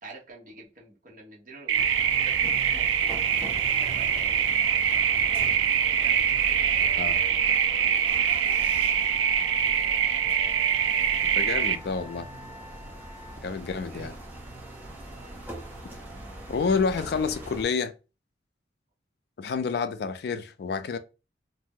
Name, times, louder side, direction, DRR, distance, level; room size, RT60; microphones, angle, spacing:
voice 1, 0.0-6.2 6.8-8.2 10.2-10.3 13.5-14.1 15.2-15.4, right 3 dB, 45° right, 1.0 m, -49 dB
sound 1, 1.7-17.6, right 1 dB, 10° right, 0.6 m, -41 dB
sound 2, 1.7-11.8, right 8 dB, 85° right, 0.3 m, -24 dB
Wind instrument woodwind instrument, 8.5-13.4, left 2 dB, 25° left, 0.7 m, -48 dB
voice 2, 11.2-12.3 13.4-14.2 16.5-17.9 19.4-21.0, left 5 dB, 55° left, 0.3 m, -29 dB
2.5 x 2.0 x 3.6 m
head